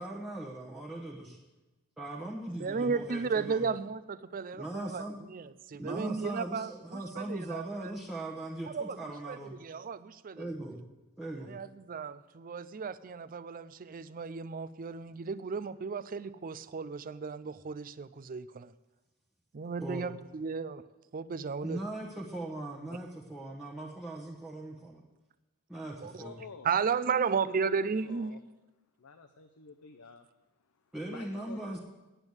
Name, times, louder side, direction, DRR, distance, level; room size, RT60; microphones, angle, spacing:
voice 1, 0.0-1.4 2.0-3.7 4.5-5.2 5.8-9.6 10.4-10.8 11.2-11.5 19.8-20.1 21.6-25.0 25.7-26.4 30.9-31.8, right 1 dB, ahead, -4 dB, 1.1 m, -39 dB
voice 2, 2.6-5.0 5.3-7.9 8.7-9.0 9.3-10.5 11.4-18.7 19.5-20.8 21.1-21.8 26.0-26.1 26.6-28.3, right 5 dB, 40° right, 16 dB, 0.4 m, -34 dB
voice 3, 26.2-28.4 29.0-31.8, left 5 dB, 75° left, 5 dB, 0.7 m, -52 dB
8.9 x 8.9 x 8.0 m, 1.1 s
head